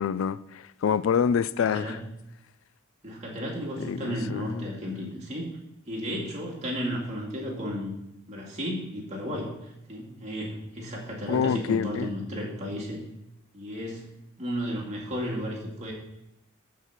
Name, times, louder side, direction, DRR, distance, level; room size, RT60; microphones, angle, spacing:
voice 1, 0.0-2.0 3.8-4.7 11.3-12.1, left 7 dB, 70° left, 0.3 m, -27 dB
voice 2, 1.6-2.0 3.0-5.5 5.9-7.9 8.3-13.0 13.5-14.1 14.4-15.9, equal, 35° right, 2.4 m, -33 dB
13.5 x 4.8 x 5.8 m
head